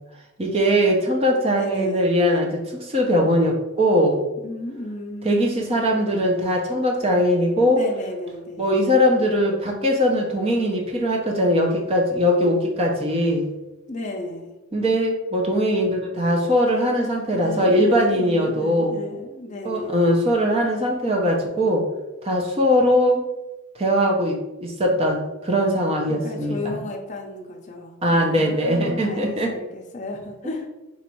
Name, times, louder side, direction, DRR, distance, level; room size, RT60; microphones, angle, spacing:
voice 1, 0.4-4.2 5.2-7.8 8.6-13.5 14.7-19.0 19.6-21.9 22.2-23.2 23.8-26.8 28.0-29.5, equal, 25° right, 1 dB, 0.7 m, -21 dB
voice 2, 1.5-2.1 4.4-5.8 7.7-8.7 13.9-14.5 17.3-20.4 26.1-30.7, left 2 dB, 35° left, -1 dB, 0.6 m, -34 dB
4.1 x 2.5 x 4.5 m, 1.0 s
head